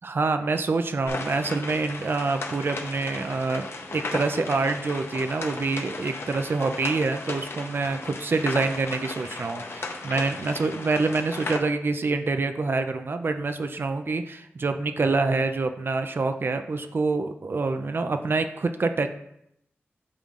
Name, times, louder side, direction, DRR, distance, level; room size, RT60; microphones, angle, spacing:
voice 1, 0.0-3.7 3.9-19.1, right 3 dB, 55° right, 7 dB, 0.5 m, -26 dB
sound 1, 1.1-11.6, left 3 dB, 70° left, 0.8 m, -35 dB
8.8 x 5.6 x 2.5 m, 0.77 s
wide cardioid pair, 80°, 4 cm